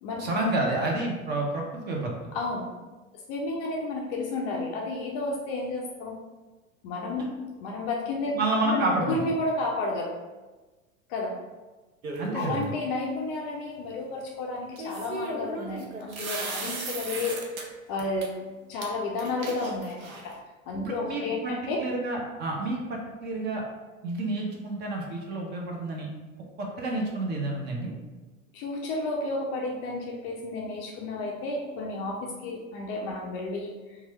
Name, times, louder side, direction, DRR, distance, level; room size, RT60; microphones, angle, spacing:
voice 1, 0.2-2.1 8.3-9.2 12.2-12.7 20.8-21.5 21.8-23.6 24.0-26.1 26.6-27.9, right 2 dB, 25° right, -1 dB, 0.5 m, -29 dB
voice 2, 2.3-2.7 3.3-6.2 6.8-7.3 7.6-10.1 11.1-11.4 12.3-17.5 17.9-18.3 18.7-20.3 20.7-21.8 28.5-34.0, left 2 dB, 35° left, -1 dB, 0.4 m, -31 dB
sound 1, 12.0-12.8 14.8-17.6 18.0-18.3 18.8-18.9 19.2-20.4, right 2 dB, 80° right, 0.6 m, -36 dB
2.9 x 2.3 x 2.9 m, 1.2 s
figure-of-eight pair, 85°, 42 cm